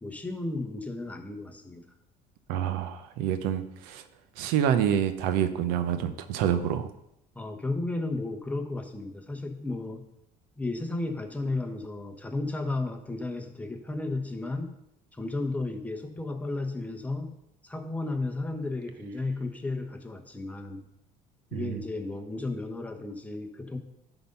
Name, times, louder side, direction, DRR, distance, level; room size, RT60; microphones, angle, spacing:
voice 1, 0.0-1.9 7.3-10.1 10.6-14.7 15.1-17.4 17.6-20.8 21.5-23.8, left 2 dB, 10° left, 4 dB, 1.1 m, -33 dB
voice 2, 2.5-4.0 4.4-6.9 21.5-21.8, right 9 dB, 85° right, 11 dB, 0.8 m, -27 dB
11.5 x 4.0 x 5.4 m, 0.81 s
cardioid pair, 110°, 15 cm